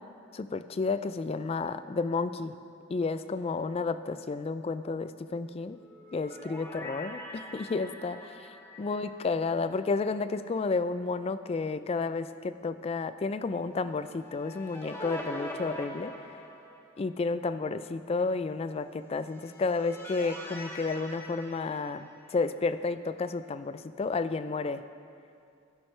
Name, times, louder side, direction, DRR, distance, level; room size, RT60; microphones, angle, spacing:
voice 1, 0.3-2.5 2.9-5.8 6.1-16.1 17.0-24.8, left 4 dB, 30° left, 13 dB, 0.3 m, -31 dB
sound 1, 5.8-10.1 10.3-10.4 14.0-17.1 19.1-22.5, equal, 10° left, 0.9 m, -44 dB
12.0 x 11.0 x 3.2 m, 2.4 s
head